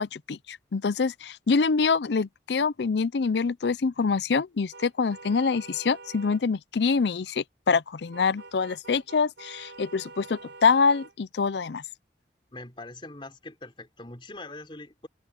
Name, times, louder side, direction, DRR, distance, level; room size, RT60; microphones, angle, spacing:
voice 1, 0.0-11.8, left 5 dB, 75° left, 0.5 m, -25 dB
sound 1, 4.7-6.4 8.1-11.1, right 3 dB, 90° right, 5.2 m, -46 dB
voice 2, 12.5-15.1, left 2 dB, 30° left, 3.6 m, -42 dB
open air
head